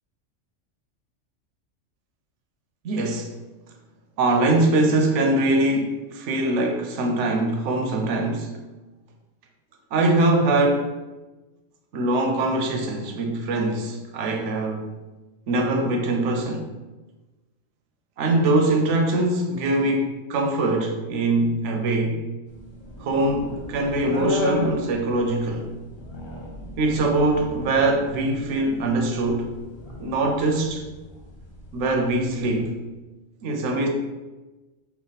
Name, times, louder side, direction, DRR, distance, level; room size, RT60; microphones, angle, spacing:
voice 1, 2.8-3.3 4.2-8.5 9.9-10.9 11.9-14.9 15.5-16.7 18.2-22.2 23.0-25.7 26.8-29.5 30.0-30.8 31.7-32.8 33.4-33.9, right 2 dB, 75° right, 2 dB, 0.9 m, -22 dB
sound 1, 22.5-32.7, left 2 dB, 45° left, 0.3 m, -35 dB
3.4 x 2.2 x 4.0 m, 1.2 s
omnidirectional pair, 1.3 m